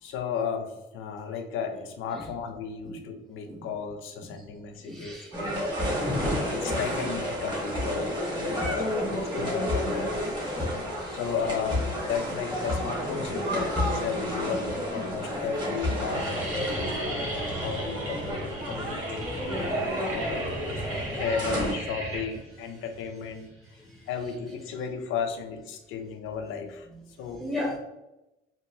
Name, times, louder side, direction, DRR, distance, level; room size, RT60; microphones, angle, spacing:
voice 1, 0.0-8.1 8.4-10.2 11.1-19.3 19.5-20.4 20.8-26.9 27.2-27.4, left 6 dB, 90° left, 5 dB, 0.5 m, -34 dB
voice 2, 4.8-5.3 6.2-6.4 10.6-11.2 27.4-27.8, left 1 dB, ahead, -2 dB, 0.6 m, -35 dB
sound 1, 5.3-21.7, equal, 20° right, 1.4 m, -30 dB
sound 2, 14.8-14.9 15.1-15.5 15.7-24.7, right 2 dB, 80° right, 1.0 m, -37 dB
3.1 x 2.6 x 2.6 m, 0.95 s
cardioid pair, 90°, 20 cm